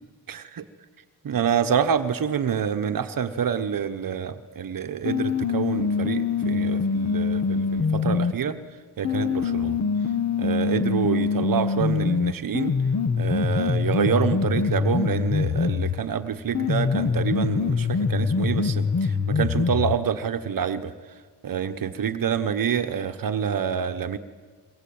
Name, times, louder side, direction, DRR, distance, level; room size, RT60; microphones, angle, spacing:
voice 1, 0.3-0.6 1.2-8.6 9.0-9.8 10.4-12.8 13.2-20.9 21.4-24.2, right 7 dB, 55° right, 8 dB, 1.1 m, -27 dB
sound 1, 5.0-8.3 9.0-16.0 16.5-20.0, left 5 dB, 45° left, 1.3 m, -24 dB
25.0 x 22.5 x 8.7 m, 1.5 s
cardioid pair, 90°, 41 cm